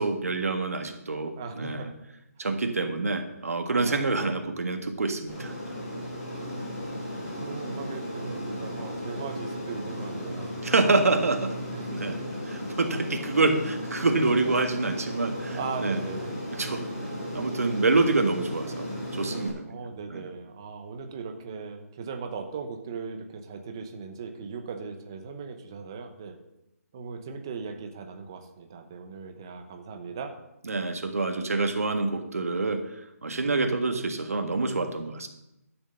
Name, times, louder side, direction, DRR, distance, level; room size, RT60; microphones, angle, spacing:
voice 1, 0.0-1.9 2.4-5.5 10.6-11.5 11.9-12.2 12.4-16.0 16.5-16.8 17.3-18.9 19.1-19.8 20.1-20.3 30.7-32.8 33.2-35.3, right 3 dB, 65° right, 5 dB, 1.7 m, -26 dB
voice 2, 1.4-1.9 3.7-4.1 7.4-10.6 11.7-11.9 14.4-14.5 15.5-16.3 19.7-26.4 26.9-30.3, right 5 dB, 15° right, 5 dB, 0.8 m, -38 dB
Aircraft, 5.3-19.5, equal, 25° left, 4.9 m, -35 dB
12.0 x 7.1 x 6.6 m, 0.88 s
hypercardioid pair, 180°, 9 cm